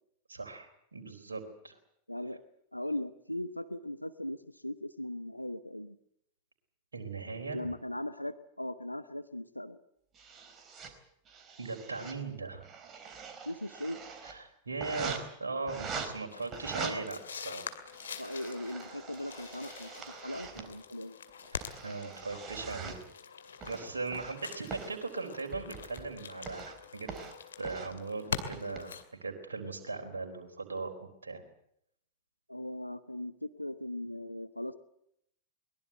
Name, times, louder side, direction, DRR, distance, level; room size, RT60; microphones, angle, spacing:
voice 1, 0.3-1.8 6.9-7.7 11.6-12.6 14.2-17.6 21.5-23.0 23.7-27.1 27.6-31.4, right 3 dB, 75° right, 3 dB, 4.0 m, -39 dB
voice 2, 2.1-2.4 2.7-6.0 7.5-9.8 13.5-14.0 16.8-17.1 18.2-21.2 32.5-34.8, left 1 dB, 85° left, 14 dB, 0.9 m, -39 dB
sound 1, 10.2-10.9 11.3-12.2 12.5-14.3 14.8-15.2 15.7-16.1 16.5-16.9 17.7-20.7 21.3-23.0 23.6-24.4 24.7-24.9 25.5-26.1 26.5-26.8 27.1-27.3 27.6-27.9 28.3-28.8, right 6 dB, 25° right, 4.1 m, -43 dB
sound 2, 16.3-29.0, left 6 dB, 70° left, 2.3 m, -45 dB
22.5 x 21.0 x 8.0 m, 0.74 s
figure-of-eight pair, 90°, 0 cm